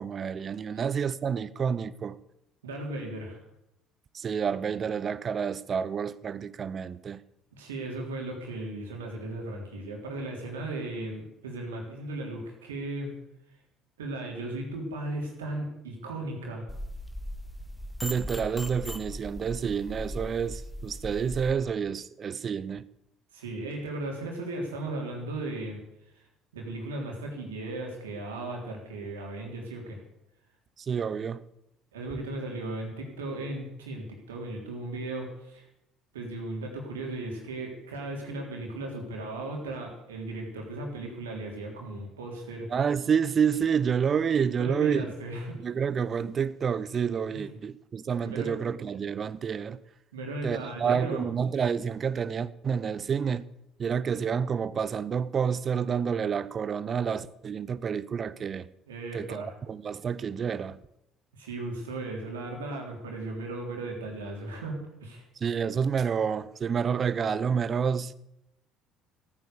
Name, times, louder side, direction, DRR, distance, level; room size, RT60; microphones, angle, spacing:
voice 1, 0.0-2.2 4.1-7.2 18.0-22.9 30.8-31.4 42.7-45.1 45.6-49.8 50.4-53.4 53.8-58.7 59.1-60.8 65.4-68.2, right 7 dB, 40° right, 0.8 m, -29 dB
voice 2, 2.6-3.4 7.5-13.1 14.0-16.7 23.3-25.8 26.1-26.2 26.5-30.0 31.9-35.7 36.1-42.7 44.6-45.6 47.3-47.4 48.2-48.6 50.1-51.2 58.9-59.5 61.4-65.2, right 2 dB, 85° right, 3.4 m, -36 dB
sound 1, 16.7-21.5, left 1 dB, 5° left, 1.7 m, -38 dB
15.0 x 9.5 x 6.9 m
hypercardioid pair, 60°, 0 cm